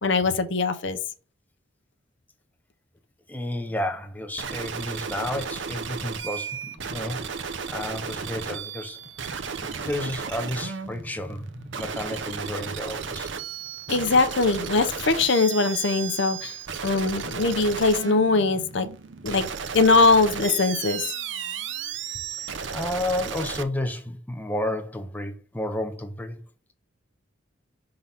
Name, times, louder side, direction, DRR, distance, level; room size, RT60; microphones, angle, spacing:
voice 1, 0.0-1.0 13.9-16.6 16.8-18.9 19.2-19.4 19.7-21.0, left 3 dB, 60° left, 0.7 m, -21 dB
voice 2, 3.3-7.2 7.7-9.0 9.3-11.5 11.8-13.3 22.4-26.4, left 1 dB, 10° left, 0.6 m, -31 dB
sound 1, 4.4-23.6, right 6 dB, 60° right, 0.7 m, -34 dB
5.8 x 3.8 x 5.5 m
head